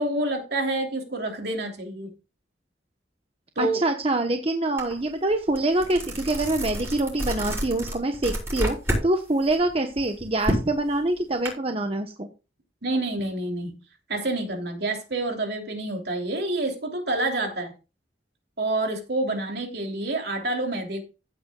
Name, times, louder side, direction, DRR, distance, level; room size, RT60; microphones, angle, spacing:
voice 1, 0.0-2.1 3.6-3.8 12.8-13.8 14.1-17.7 18.6-21.0, right 2 dB, 60° right, 3.1 m, -28 dB
voice 2, 3.6-12.3, right 2 dB, 30° right, 1.0 m, -25 dB
sound 1, 4.8-4.9 5.3-9.1 9.4-11.5, equal, 15° right, 5.8 m, -29 dB
16.0 x 8.3 x 2.4 m
head